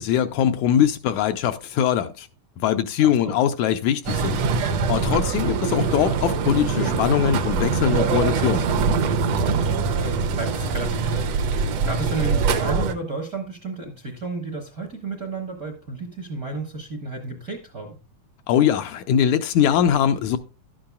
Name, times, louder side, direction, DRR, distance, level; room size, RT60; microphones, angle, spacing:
voice 1, 0.0-2.3 2.6-4.4 4.9-8.7 18.5-20.4, left 9 dB, 80° left, 1.9 m, -21 dB
voice 2, 3.0-3.3 9.4-18.0, right 3 dB, 50° right, 1.0 m, -33 dB
sound 1, 4.1-12.9, right 5 dB, 70° right, 1.7 m, -23 dB
11.5 x 8.7 x 2.3 m
omnidirectional pair, 3.6 m